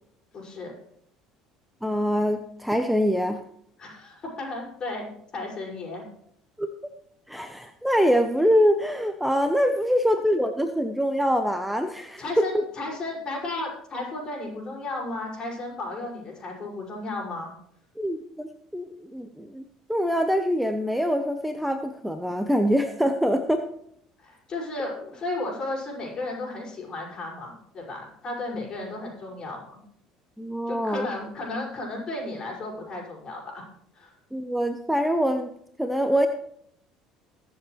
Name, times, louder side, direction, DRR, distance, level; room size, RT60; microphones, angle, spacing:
voice 1, 0.3-0.7 3.8-6.0 12.2-17.5 24.2-29.7 30.7-33.6 33.9-34.1, left 2 dB, 40° left, -1 dB, 6.0 m, -34 dB
voice 2, 1.8-3.4 6.6-6.7 7.3-12.6 18.0-19.6 19.9-23.6 28.5-28.6 30.4-31.1 34.3-35.5 35.8-36.3, equal, ahead, 8 dB, 0.9 m, -24 dB
22.0 x 7.5 x 3.3 m, 0.70 s
figure-of-eight pair, 60°, 2 cm